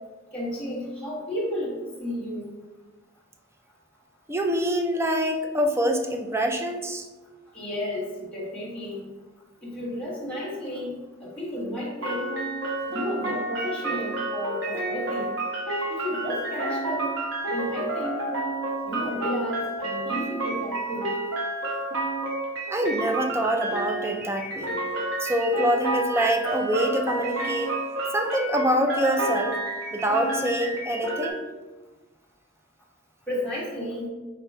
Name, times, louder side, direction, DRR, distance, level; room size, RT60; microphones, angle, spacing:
voice 1, 0.3-2.5 7.5-9.1 9.6-10.9 11.2-12.3 12.9-15.3 15.9-17.1 17.5-18.3 18.8-21.1 33.3-34.1, left 1 dB, 5° left, -8 dB, 1.3 m, -32 dB
voice 2, 4.3-7.1 22.7-24.8 25.2-27.7 28.1-29.5 29.9-31.4, equal, 15° right, 4 dB, 0.4 m, -25 dB
sound 1, 12.0-31.3, right 2 dB, 85° right, 1.2 m, -30 dB
5.2 x 2.2 x 4.6 m, 1.2 s
head